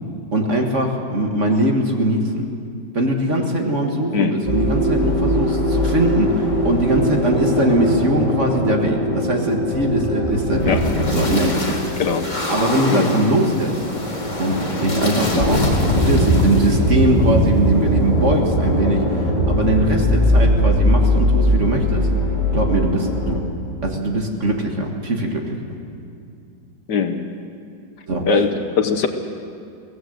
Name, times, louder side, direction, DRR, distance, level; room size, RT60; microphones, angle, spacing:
voice 1, 0.3-2.4 2.9-10.8 11.1-11.8 12.5-13.8 14.4-22.1 22.5-23.4 23.8-25.6 28.1-28.3, right 1 dB, 40° right, 2 dB, 2.0 m, -21 dB
sound 1, 4.5-23.4, equal, 20° left, 2.9 m, -20 dB
voice 2, 26.9-27.2 28.3-29.1, left 5 dB, 65° left, 6 dB, 1.7 m, -20 dB
23.0 x 17.0 x 7.8 m, 2.4 s
omnidirectional pair, 2.0 m